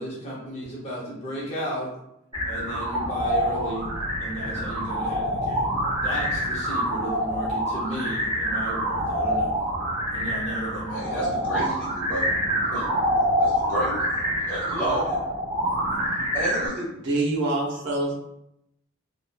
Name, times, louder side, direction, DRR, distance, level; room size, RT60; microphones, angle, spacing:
voice 1, 0.0-1.9 2.4-3.9 4.2-9.5 10.1-11.4, equal, 30° left, -7 dB, 0.7 m, -34 dB
sound 1, 2.3-16.7, equal, 25° right, 1.3 m, -26 dB
voice 2, 10.9-12.3 12.7-12.9 13.4-14.1 14.5-15.2 16.3-16.9, right 1 dB, 10° left, -12 dB, 1.4 m, -30 dB
voice 3, 17.0-18.1, right 2 dB, 55° right, -5 dB, 0.7 m, -25 dB
2.8 x 2.2 x 2.3 m, 0.80 s
head